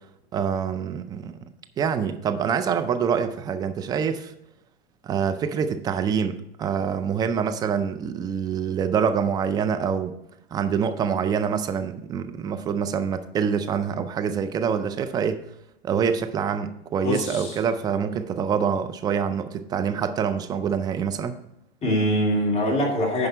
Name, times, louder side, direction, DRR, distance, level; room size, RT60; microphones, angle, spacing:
voice 1, 0.3-1.4 1.8-4.3 5.0-10.2 10.5-15.4 15.8-21.4, right 7 dB, 15° right, 0.3 m, -25 dB
voice 2, 17.0-17.6 21.8-23.3, equal, 20° left, 2.6 m, -23 dB
9.8 x 5.3 x 4.5 m
hypercardioid pair, 130°, 32 cm